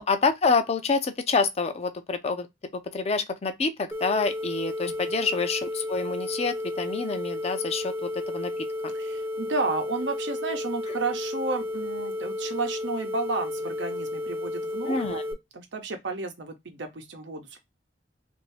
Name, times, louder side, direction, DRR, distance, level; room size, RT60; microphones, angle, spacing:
voice 1, 0.0-2.5 2.7-8.9 14.9-15.2, left 4 dB, 35° left, 0.5 m, -27 dB
sound 1, 3.9-15.3, left 1 dB, 15° right, 0.5 m, -32 dB
voice 2, 4.8-5.1 8.9-15.2 15.5-17.6, right 3 dB, 90° right, 0.8 m, -32 dB
2.7 x 2.6 x 3.2 m
head